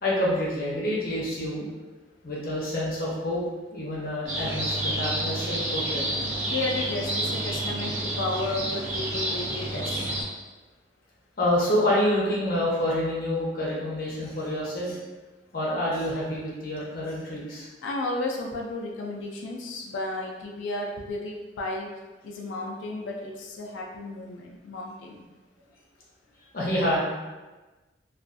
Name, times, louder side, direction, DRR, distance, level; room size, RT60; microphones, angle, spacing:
voice 1, 0.0-1.7 2.2-3.4 3.7-6.0 11.4-15.0 15.5-17.7 26.5-27.0, left 1 dB, 50° left, -6 dB, 0.7 m, -27 dB
sound 1, 4.3-10.2, right 1 dB, 40° right, 0.7 m, -29 dB
voice 2, 6.5-10.1 17.8-21.9 22.2-25.3, left 2 dB, 90° left, 0 dB, 0.3 m, -33 dB
2.4 x 2.3 x 2.5 m, 1.2 s
head